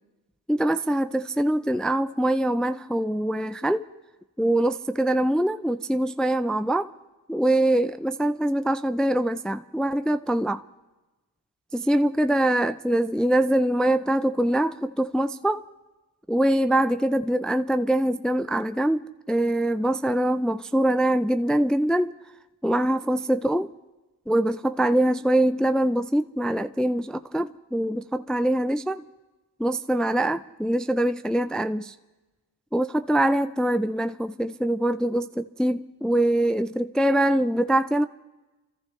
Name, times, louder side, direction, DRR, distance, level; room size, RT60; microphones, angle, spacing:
voice 1, 0.5-3.8 4.4-6.9 7.3-10.6 11.7-15.6 16.3-22.1 22.6-23.7 24.3-29.1 29.6-31.9 32.7-38.1, right 1 dB, ahead, 0.4 m, -23 dB
27.0 x 14.5 x 3.2 m
supercardioid pair, 50°, 43 cm